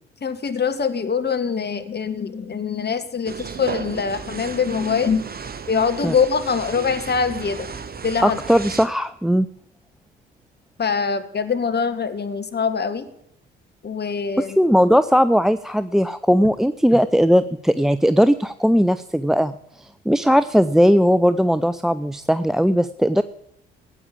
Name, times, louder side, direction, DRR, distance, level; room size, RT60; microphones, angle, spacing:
voice 1, 0.2-5.2 5.7-7.7 8.0-8.4 10.8-13.1 13.8-14.6, left 6 dB, 35° left, 9 dB, 1.8 m, -23 dB
sound 1, 3.3-8.9, right 5 dB, 30° right, 1.5 m, -34 dB
voice 2, 8.2-9.5 14.6-23.2, equal, ahead, 14 dB, 0.5 m, -18 dB
15.5 x 8.7 x 8.5 m, 0.75 s
hypercardioid pair, 45°, 29 cm